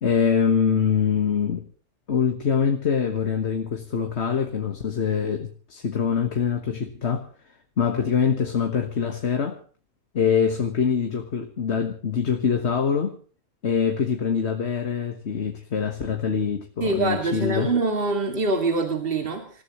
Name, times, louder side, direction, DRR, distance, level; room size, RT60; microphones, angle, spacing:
voice 1, 0.0-1.7 2.1-7.3 7.8-9.6 10.1-13.2 13.6-17.7, left 6 dB, 60° left, 5 dB, 1.7 m, -24 dB
voice 2, 16.8-19.6, right 3 dB, 45° right, 3 dB, 2.5 m, -24 dB
27.5 x 15.0 x 3.1 m, 0.40 s
omnidirectional pair, 1.3 m